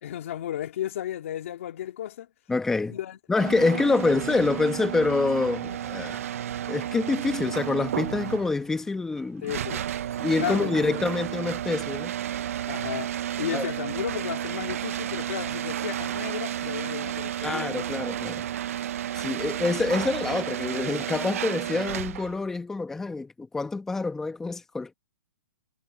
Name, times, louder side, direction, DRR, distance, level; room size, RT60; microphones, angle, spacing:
voice 1, 0.0-2.3 2.9-3.2 3.6-4.0 9.4-9.9 10.4-11.0 12.7-17.7, left 12 dB, 55° left, 2.3 m, -34 dB
voice 2, 2.5-2.9 3.3-6.2 6.7-9.5 10.2-12.1 13.5-13.7 17.4-18.5 19.1-24.9, left 3 dB, 5° left, 1.0 m, -26 dB
Garage Door, 3.4-22.4, right 10 dB, 60° right, 0.5 m, -32 dB
hypercardioid pair, 160°, 9 cm